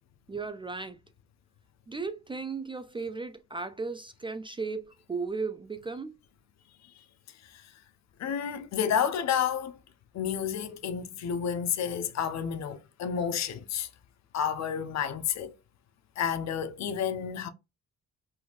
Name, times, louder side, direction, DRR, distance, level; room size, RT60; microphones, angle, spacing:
voice 1, 0.3-1.0 1.9-6.1, right 4 dB, 15° right, 0.3 m, -35 dB
voice 2, 8.2-9.8 10.1-13.9 14.3-15.5 16.2-17.5, left 8 dB, 60° left, 0.6 m, -30 dB
3.8 x 2.5 x 2.4 m
cardioid pair, 90°, 30 cm